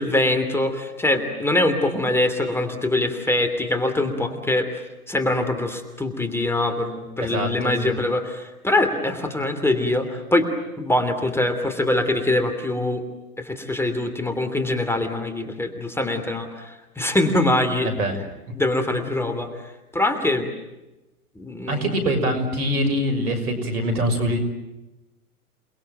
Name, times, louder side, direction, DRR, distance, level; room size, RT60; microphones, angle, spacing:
voice 1, 0.0-4.7 5.1-10.5 10.8-13.0 13.4-17.9 18.5-20.5 21.3-21.9, left 1 dB, 5° left, 7 dB, 3.0 m, -23 dB
voice 2, 7.2-8.0 17.8-18.1 21.7-24.4, equal, 75° right, 8 dB, 6.5 m, -24 dB
29.0 x 21.0 x 9.3 m, 1.0 s
hypercardioid pair, 115°, 45 cm